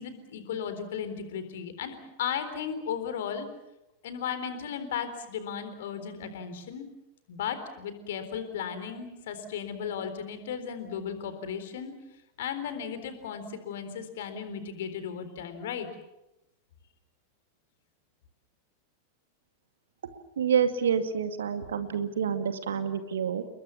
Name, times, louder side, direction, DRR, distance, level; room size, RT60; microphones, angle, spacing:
voice 1, 0.0-3.5 4.0-6.9 7.3-11.9 12.4-15.9, left 7 dB, 55° left, 10 dB, 3.9 m, -35 dB
voice 2, 20.4-23.4, right 7 dB, 65° right, 9 dB, 2.2 m, -28 dB
30.0 x 21.5 x 7.3 m, 0.92 s
figure-of-eight pair, 90°, 0 cm